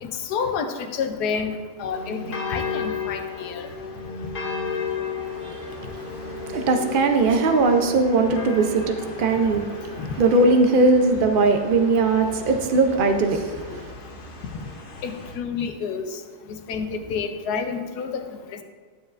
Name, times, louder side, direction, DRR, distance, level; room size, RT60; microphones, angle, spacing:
voice 1, 0.0-1.5 1.8-3.6 10.0-10.1 15.0-16.1 16.5-18.2, left 6 dB, 85° left, 7 dB, 1.3 m, -29 dB
sound 1, 1.9-15.4, left 5 dB, 40° left, 1.0 m, -34 dB
voice 2, 5.3-13.9, right 3 dB, 50° right, 5 dB, 0.6 m, -20 dB
12.0 x 7.2 x 2.5 m, 1.5 s
omnidirectional pair, 1.7 m